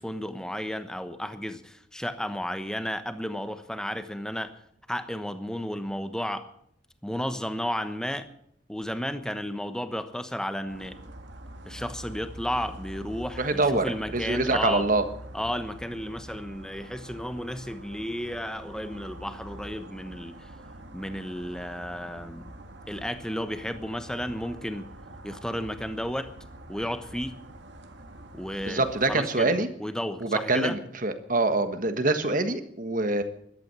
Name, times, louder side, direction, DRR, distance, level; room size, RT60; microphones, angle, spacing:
voice 1, 0.0-4.5 4.9-6.5 7.0-8.3 8.7-11.0 11.6-14.9 15.3-20.5 20.9-22.5 22.9-24.9 25.2-26.3 26.7-27.4 28.3-29.5 29.8-30.8, equal, 5° left, 9 dB, 1.1 m, -33 dB
sound 1, 10.7-29.2, right 1 dB, 65° right, 2.0 m, -45 dB
voice 2, 13.4-13.8 14.1-15.0 28.7-29.7 30.2-33.2, right 2 dB, 45° right, 9 dB, 1.5 m, -25 dB
14.0 x 12.0 x 8.2 m, 0.70 s
head